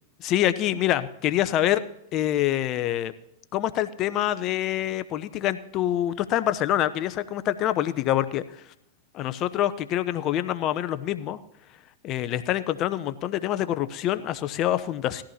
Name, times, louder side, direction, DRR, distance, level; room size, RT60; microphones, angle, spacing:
voice 1, 0.2-1.8 2.1-3.1 3.5-8.4 9.1-11.4 12.0-15.2, left 12 dB, 40° left, 13 dB, 0.7 m, -26 dB
18.0 x 14.0 x 2.9 m, 0.78 s
hypercardioid pair, 110°, 0 cm